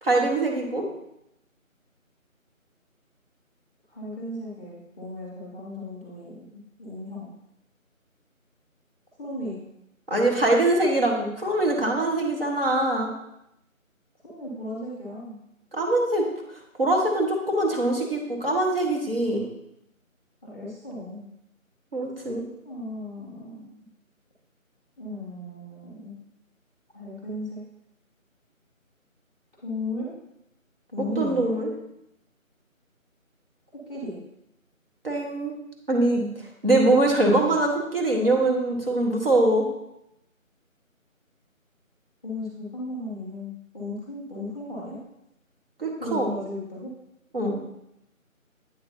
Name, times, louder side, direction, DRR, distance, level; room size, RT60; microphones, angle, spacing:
voice 1, 0.0-0.9 10.1-13.1 15.7-16.2 16.8-19.5 21.9-22.4 31.2-31.7 35.0-35.5 35.9-36.3 36.6-39.7 45.8-46.3 47.3-47.6, right 2 dB, 45° right, 0 dB, 1.7 m, -23 dB
voice 2, 3.9-7.3 9.2-9.6 14.2-15.4 20.4-21.3 22.6-23.8 25.0-26.1 26.9-27.6 29.6-30.1 30.9-31.5 33.9-34.2 42.2-45.0 46.0-46.9, left 1 dB, 10° right, -5 dB, 1.5 m, -35 dB
8.7 x 6.4 x 2.8 m, 0.81 s
figure-of-eight pair, 170°, 41 cm